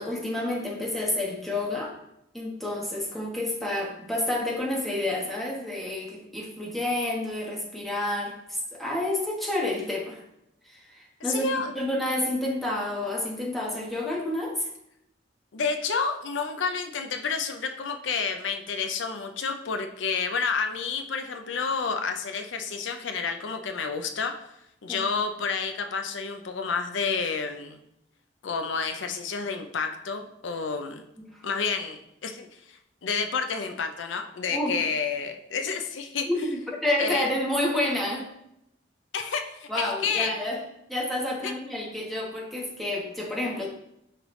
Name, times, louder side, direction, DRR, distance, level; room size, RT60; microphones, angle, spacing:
voice 1, 0.0-1.9 2.3-10.2 10.6-14.7 24.9-25.0 31.3-31.4 34.5-34.8 36.3-38.3 39.7-40.6 40.9-43.7, left 1 dB, ahead, -3 dB, 1.2 m, -29 dB
voice 2, 11.3-11.7 15.5-24.3 24.8-27.8 28.4-31.0 31.4-36.5 37.0-37.2 39.1-40.3 41.4-41.5, left 5 dB, 80° left, 6 dB, 0.5 m, -30 dB
9.8 x 3.3 x 3.1 m, 0.80 s
head